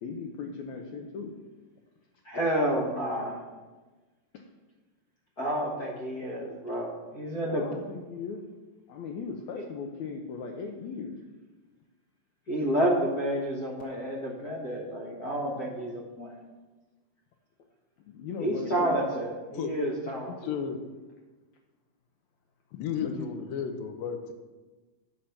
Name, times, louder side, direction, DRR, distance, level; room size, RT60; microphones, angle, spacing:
voice 1, 0.0-1.3 4.3-4.5 7.5-8.4 8.9-11.2 15.4-15.7 18.1-19.0 23.0-23.3, left 5 dB, 75° left, 2 dB, 1.8 m, -38 dB
voice 2, 2.2-3.4 5.4-7.7 9.6-9.7 12.5-16.3 18.4-20.3, right 1 dB, 60° left, -2 dB, 1.0 m, -30 dB
voice 3, 20.3-20.8 22.7-24.3, left 7 dB, 90° left, 7 dB, 2.6 m, -33 dB
8.6 x 6.5 x 5.7 m, 1.2 s
omnidirectional pair, 3.9 m